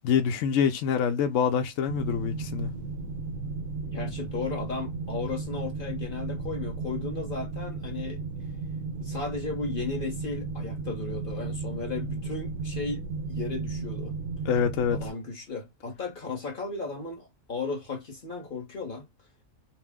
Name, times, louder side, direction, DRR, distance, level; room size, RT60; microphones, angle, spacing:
voice 1, 0.0-2.7 14.5-15.0, left 7 dB, 70° left, 0.9 m, -25 dB
sound 1, 1.9-15.1, right 4 dB, 75° right, 1.0 m, -34 dB
voice 2, 3.9-8.2 9.0-13.0 13.3-14.1 14.9-19.1, left 4 dB, 45° left, 1.0 m, -35 dB
2.6 x 2.0 x 3.4 m
omnidirectional pair, 1.4 m